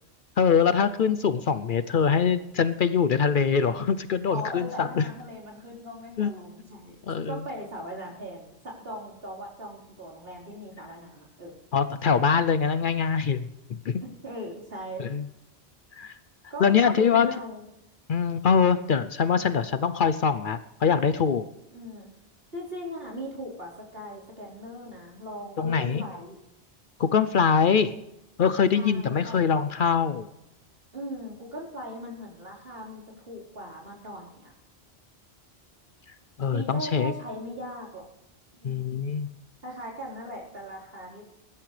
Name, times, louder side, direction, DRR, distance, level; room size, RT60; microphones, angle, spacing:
voice 1, 0.4-5.0 6.2-6.3 7.1-7.4 11.7-13.5 13.9-14.0 15.0-15.2 16.0-16.1 16.6-17.3 18.1-21.5 25.6-26.0 27.0-27.9 28.4-30.3 36.4-37.1 38.6-39.3, left 6 dB, 60° left, 12 dB, 0.7 m, -23 dB
voice 2, 4.3-7.0 7.3-11.5 14.2-15.1 16.5-17.6 21.7-22.1 22.5-26.4 28.7-29.4 30.9-34.5 36.5-38.1 38.6-39.0 39.6-41.2, equal, 60° right, -5 dB, 4.6 m, -39 dB
21.5 x 12.0 x 3.3 m, 0.88 s
omnidirectional pair, 1.1 m